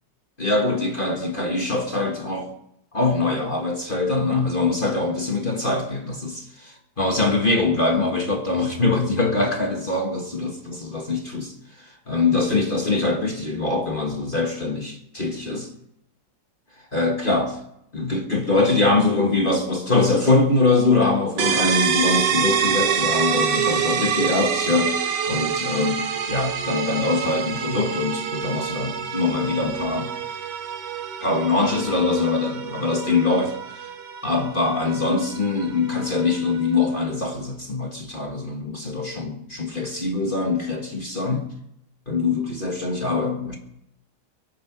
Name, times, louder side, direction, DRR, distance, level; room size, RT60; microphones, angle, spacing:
voice 1, 0.4-2.5 2.9-11.5 12.1-15.7 16.9-17.5 17.9-30.1 31.2-33.9 34.2-41.5 42.1-43.6, left 3 dB, 30° left, 2 dB, 1.8 m, -23 dB
sound 1, 21.4-36.9, right 7 dB, 80° right, 1.8 m, -27 dB
23.0 x 8.9 x 6.0 m, 0.79 s
omnidirectional pair, 1.8 m